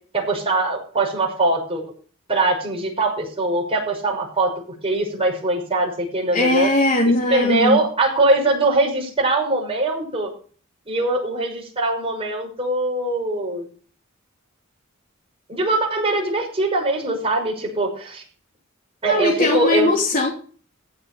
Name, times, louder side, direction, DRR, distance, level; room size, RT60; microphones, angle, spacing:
voice 1, 0.1-1.8 2.3-4.5 4.8-6.7 7.1-10.3 10.9-13.7 15.5-18.2 19.0-19.9, right 2 dB, 25° right, -1 dB, 6.0 m, -22 dB
voice 2, 6.3-7.8 19.1-20.3, left 2 dB, 40° left, -2 dB, 2.9 m, -19 dB
15.5 x 6.5 x 6.9 m, 0.42 s
head